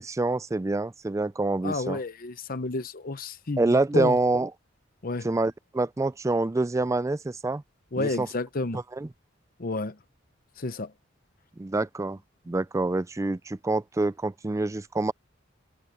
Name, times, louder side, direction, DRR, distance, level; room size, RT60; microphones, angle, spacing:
voice 1, 0.0-2.0 3.6-4.5 5.2-7.6 8.0-8.3 8.7-9.1 11.6-12.2 12.5-15.1, right 2 dB, 15° right, 0.4 m, -26 dB
voice 2, 1.6-4.2 5.0-5.3 7.9-8.8 9.6-10.0 10.6-10.9, left 3 dB, 50° left, 0.8 m, -31 dB
head